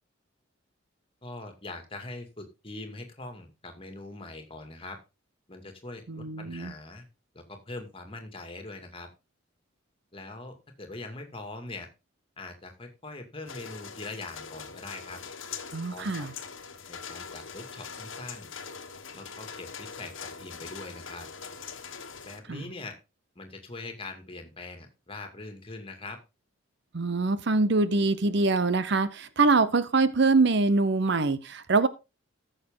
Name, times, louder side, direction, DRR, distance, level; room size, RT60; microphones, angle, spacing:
voice 1, 1.2-5.0 5.5-7.1 7.3-9.1 10.1-11.9 12.4-15.2 15.9-16.3 16.9-18.5 19.1-21.3 22.2-23.0 23.4-26.2, left 2 dB, 25° left, 2.3 m, -42 dB
voice 2, 6.1-6.7 15.7-16.3 22.5-22.6 26.9-31.9, right 3 dB, 60° right, 0.8 m, -24 dB
sound 1, 13.5-22.4, left 6 dB, 70° left, 1.4 m, -42 dB
14.5 x 6.6 x 3.8 m
head